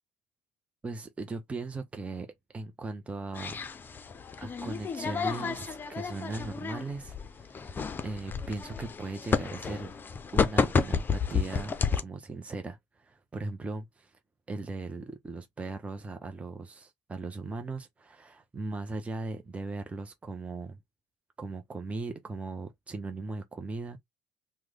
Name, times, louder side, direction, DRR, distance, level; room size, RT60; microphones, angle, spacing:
voice 1, 0.8-3.6 4.4-9.9 10.3-14.1 14.5-20.8 21.4-24.0, right 3 dB, 15° right, 0.6 m, -38 dB
sound 1, 3.3-12.0, left 5 dB, 25° left, 0.6 m, -31 dB
3.1 x 2.1 x 3.7 m
supercardioid pair, 90°, 8 cm